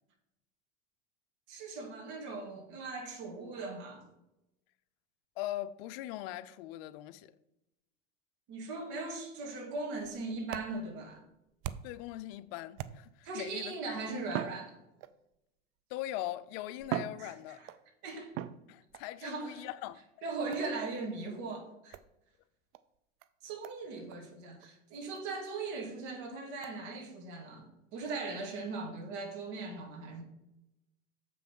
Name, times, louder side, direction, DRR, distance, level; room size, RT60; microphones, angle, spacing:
voice 1, 1.5-4.0 8.5-11.2 13.2-14.8 17.2-17.7 18.0-18.4 19.2-19.7 20.2-22.0 23.4-30.2, right 3 dB, 55° right, 2.5 m, -39 dB
voice 2, 5.4-7.3 11.8-14.2 15.9-17.6 18.7-20.0, left 14 dB, 55° left, 0.6 m, -41 dB
sound 1, 9.9-12.1 12.8-13.4 14.2-15.4 16.2-16.3 16.8-17.9 18.3-19.1 20.5-20.8 21.9-22.1 22.7-22.8 23.2-23.3 23.6-23.8 24.1-24.2 24.6-24.7 25.1-25.2 25.7-25.8 26.6-26.8, right 12 dB, 40° right, 0.4 m, -41 dB
7.1 x 5.9 x 5.4 m
supercardioid pair, 125°, 36 cm